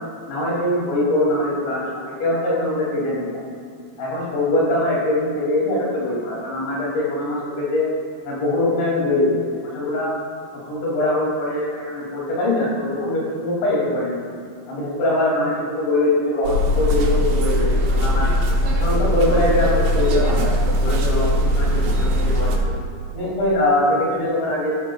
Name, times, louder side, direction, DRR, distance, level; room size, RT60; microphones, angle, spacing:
voice 1, 0.3-3.3 4.0-7.9 8.2-10.1 10.7-14.2 14.7-18.3 18.8-22.6 23.1-24.8, left 1 dB, 75° left, -5 dB, 4.9 m, -22 dB
sound 1, 16.4-22.6, equal, 80° right, 3.3 m, -20 dB
12.5 x 12.0 x 2.3 m, 2.4 s
omnidirectional pair, 5.3 m